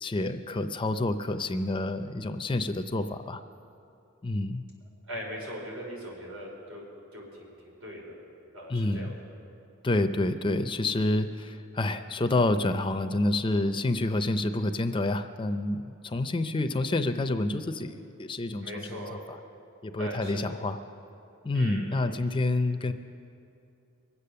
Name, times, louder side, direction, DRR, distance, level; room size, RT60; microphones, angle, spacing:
voice 1, 0.0-3.4 4.2-4.6 8.7-9.1 9.8-19.4 19.8-20.8 21.4-22.9, left 2 dB, 25° left, 9 dB, 0.5 m, -28 dB
voice 2, 5.1-6.8 7.1-8.2 8.5-9.1 18.6-19.2 20.0-20.6 21.5-22.1, equal, 80° right, -2 dB, 4.7 m, -40 dB
23.5 x 8.4 x 6.7 m, 2.6 s
head